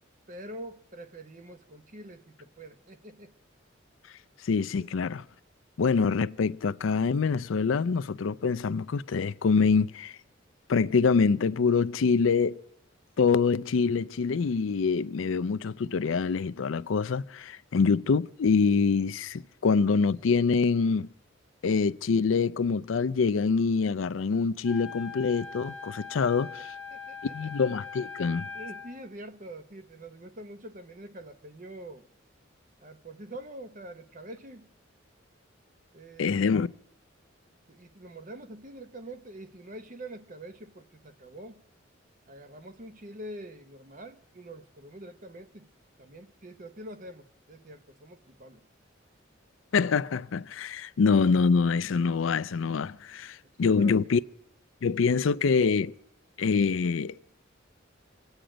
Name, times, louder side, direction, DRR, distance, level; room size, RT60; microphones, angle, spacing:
voice 1, 0.3-3.3 4.8-4.9 26.9-27.5 28.5-32.1 32.8-34.7 35.9-36.6 37.7-41.6 42.3-45.7 46.0-48.7 53.6-53.9, right 1 dB, 45° right, 1.0 m, -45 dB
voice 2, 4.4-5.2 5.8-10.2 10.7-12.6 13.2-21.1 21.6-26.7 27.3-28.5 36.2-36.7 49.7-54.2 54.8-55.9 56.4-57.4, left 5 dB, 85° left, 0.5 m, -25 dB
Wind instrument woodwind instrument, 24.6-29.1, left 5 dB, 75° right, 2.5 m, -41 dB
25.5 x 9.0 x 5.1 m
head